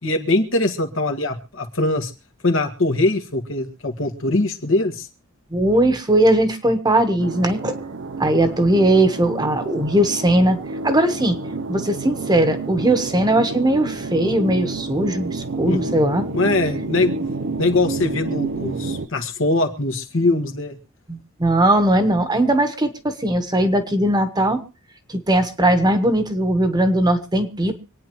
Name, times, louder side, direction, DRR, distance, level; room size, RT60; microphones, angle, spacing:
voice 1, 0.0-2.1 2.4-5.1 15.6-15.9 16.3-17.1 17.6-20.8, left 2 dB, 70° left, 5 dB, 1.7 m, -22 dB
voice 2, 5.5-7.7 8.2-10.6 10.8-11.4 11.7-16.3 21.1-24.6 25.1-27.8, right 1 dB, 20° right, 9 dB, 1.2 m, -19 dB
sound 1, 7.2-19.1, right 3 dB, 60° right, 0.7 m, -29 dB
25.5 x 9.4 x 3.1 m, 0.34 s
head